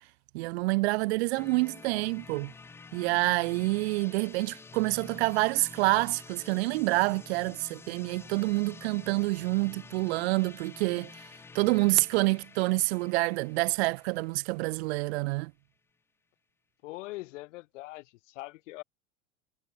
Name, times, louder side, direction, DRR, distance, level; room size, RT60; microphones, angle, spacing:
voice 1, 0.3-2.5 2.9-11.2 11.5-15.5, right 24 dB, 55° right, 0.6 m, -27 dB
sound 1, 1.4-15.1, left 4 dB, 5° left, 0.4 m, -49 dB
voice 2, 16.8-18.8, left 20 dB, 65° left, 4.6 m, -42 dB
supercardioid pair, 150°, 39 cm